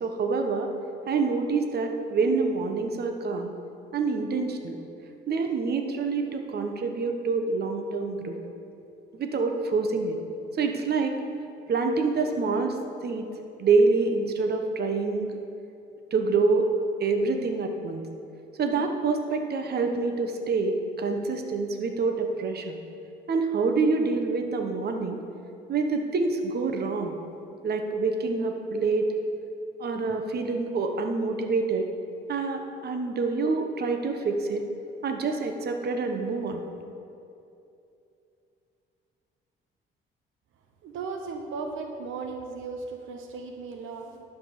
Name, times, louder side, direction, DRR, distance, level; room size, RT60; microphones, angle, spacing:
voice 1, 0.0-0.7 1.1-3.5 3.9-4.8 5.3-8.4 9.1-10.2 10.6-11.2 11.7-13.3 13.6-15.3 16.1-16.7 17.0-18.0 18.6-22.8 23.3-25.2 25.7-27.1 27.6-29.1 29.8-31.9 32.3-34.6 35.0-36.6, right 4 dB, 55° right, 5 dB, 1.1 m, -26 dB
voice 2, 40.8-44.2, right 4 dB, 85° right, 4 dB, 1.0 m, -36 dB
11.0 x 6.0 x 6.7 m, 2.7 s
cardioid pair, 90°, 20 cm